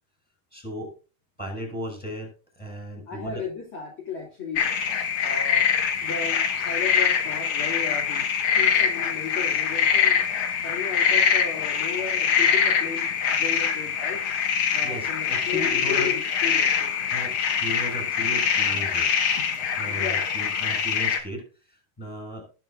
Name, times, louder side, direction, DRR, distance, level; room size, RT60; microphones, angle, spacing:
voice 1, 0.5-0.9 1.4-3.4 14.8-16.1 17.1-19.1 19.8-21.4 21.7-22.4, equal, ahead, 1 dB, 6.2 m, -36 dB
voice 2, 3.1-4.8 5.2-5.7 6.0-10.2 10.6-14.2 14.7-16.9 19.8-20.3, left 5 dB, 35° left, -2 dB, 2.8 m, -35 dB
sound 1, 4.6-21.2, left 7 dB, 50° left, 2.2 m, -24 dB
19.5 x 7.4 x 2.5 m, 0.34 s
omnidirectional pair, 4.6 m